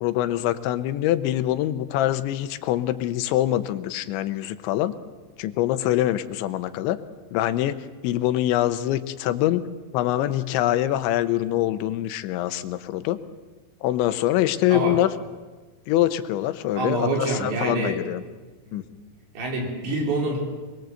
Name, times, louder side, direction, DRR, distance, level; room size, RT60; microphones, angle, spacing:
voice 1, 0.0-5.0 5.4-7.0 7.3-7.8 8.0-9.7 9.9-13.2 13.8-15.1 15.9-18.2 18.7-18.8, left 13 dB, 85° left, 12 dB, 3.3 m, -24 dB
voice 2, 16.8-18.0 18.6-18.8 19.3-20.4, right 2 dB, 75° right, 1 dB, 6.7 m, -26 dB
25.5 x 21.5 x 7.9 m, 1.3 s
omnidirectional pair, 5.2 m